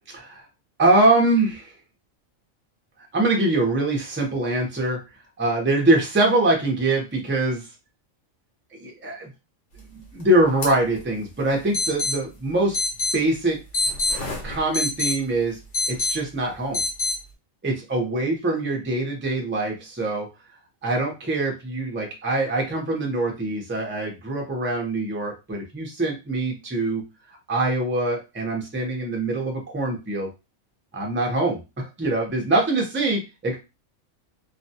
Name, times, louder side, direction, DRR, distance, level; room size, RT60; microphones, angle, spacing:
voice 1, 0.1-0.4 0.8-1.7 3.1-5.0 5.4-7.6 8.8-9.3 9.9-12.8 13.1-13.6 14.4-15.6 15.9-16.8 17.6-20.3 20.8-27.0 27.5-30.3 30.9-33.6, right 2 dB, 15° right, 0 dB, 0.4 m, -23 dB
sound 1, 10.6-10.7 11.0-11.1 11.7-12.1 12.7-13.1 13.7-15.1 15.7-16.2 16.7-17.1, left 2 dB, 70° left, 1.1 m, -24 dB
2.5 x 2.2 x 2.7 m, 0.26 s
omnidirectional pair, 1.3 m